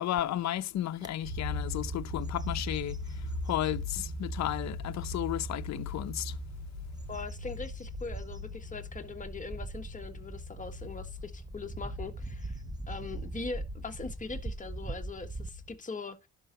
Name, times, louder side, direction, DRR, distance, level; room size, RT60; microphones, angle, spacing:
voice 1, 0.0-6.4, left 13 dB, 65° left, 0.7 m, -33 dB
sound 1, 1.0-1.1 1.6-1.9 2.2-3.7 4.3-4.4 6.1-15.5, right 2 dB, 15° right, 0.9 m, -42 dB
sound 2, 1.2-15.7, left 1 dB, 70° right, 3.5 m, -40 dB
voice 2, 7.1-16.3, left 4 dB, 25° left, 1.5 m, -41 dB
11.5 x 5.6 x 3.9 m
cardioid pair, 90°, 30 cm